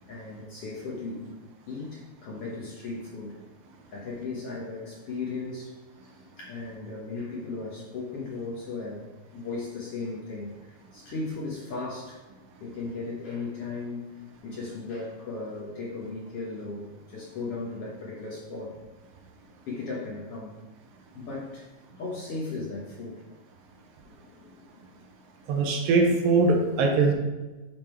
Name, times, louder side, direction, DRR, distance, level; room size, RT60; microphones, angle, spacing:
voice 1, 0.1-1.3 1.7-3.4 3.9-5.7 6.0-12.2 12.6-14.1 14.4-18.7 19.6-20.6 21.1-21.7 22.0-23.2 24.0-24.7, left 3 dB, 60° left, -4 dB, 1.6 m, -36 dB
voice 2, 25.5-27.1, right 3 dB, 85° right, 0 dB, 2.6 m, -21 dB
8.9 x 3.7 x 4.4 m, 1.2 s
omnidirectional pair, 4.0 m